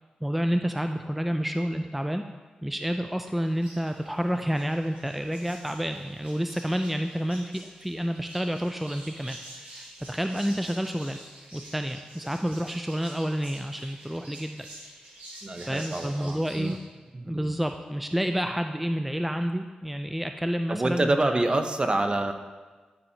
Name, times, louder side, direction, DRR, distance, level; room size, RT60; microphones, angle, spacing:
voice 1, 0.2-2.2 2.6-11.2 11.5-14.7 15.7-16.8 17.3-21.4, equal, 5° right, 6 dB, 0.3 m, -29 dB
sound 1, 3.4-16.8, right 1 dB, 85° right, 1.9 m, -48 dB
voice 2, 15.4-16.8 17.1-17.5 20.7-22.3, right 2 dB, 35° right, 7 dB, 0.7 m, -27 dB
12.0 x 4.3 x 2.8 m, 1.4 s
cardioid pair, 45°, 3 cm